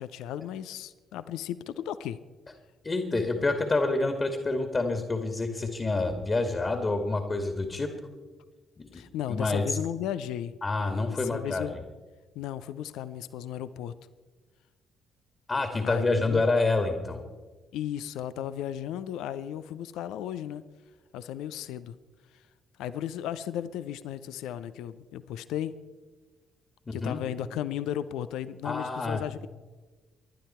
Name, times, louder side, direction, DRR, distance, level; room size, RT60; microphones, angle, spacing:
voice 1, 0.0-2.2 8.9-10.6 11.1-11.7 12.4-13.9 15.8-16.5 17.7-20.6 21.1-22.0 22.8-25.7 26.9-29.5, left 11 dB, 65° left, 14 dB, 0.6 m, -35 dB
voice 2, 2.8-7.9 8.8-9.0 9.3-9.6 10.6-11.8 15.5-17.2 26.9-27.2 28.6-29.2, left 3 dB, 30° left, 6 dB, 2.1 m, -27 dB
27.0 x 12.0 x 4.4 m, 1.3 s
figure-of-eight pair, 45°, 0 cm